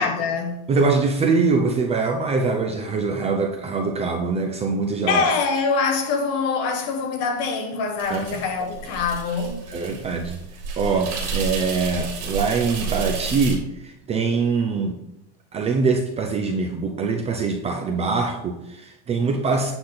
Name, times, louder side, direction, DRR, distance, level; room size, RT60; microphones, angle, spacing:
voice 1, 0.0-0.7 5.1-9.7, left 4 dB, 45° left, 1.4 m, -24 dB
voice 2, 0.7-5.3 8.1-8.4 9.7-10.4 10.8-14.9 15.5-19.7, right 4 dB, 20° right, 0.5 m, -23 dB
sound 1, 8.0-13.5, right 4 dB, 55° right, 2.8 m, -31 dB
8.7 x 5.7 x 4.0 m
cardioid pair, 165°, 35 cm